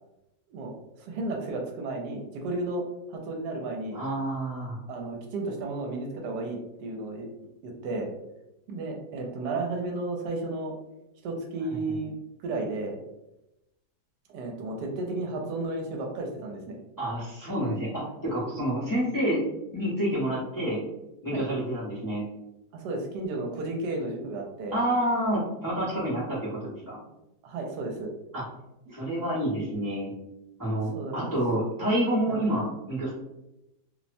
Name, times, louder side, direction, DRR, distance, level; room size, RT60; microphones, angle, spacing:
voice 1, 1.0-2.8 3.1-4.0 4.9-8.1 8.7-10.7 11.2-12.1 12.4-13.0 14.3-16.8 21.3-21.4 22.7-24.8 27.4-28.1 28.9-29.0 30.8-31.3 32.3-32.4, right 2 dB, 80° right, 1 dB, 1.1 m, -33 dB
voice 2, 3.9-4.8 17.0-19.4 19.7-20.8 21.2-22.2 24.7-27.0 28.3-28.4 28.9-30.1 30.6-33.1, right 1 dB, 20° left, -10 dB, 0.5 m, -28 dB
2.8 x 2.0 x 2.5 m, 0.90 s
omnidirectional pair, 1.8 m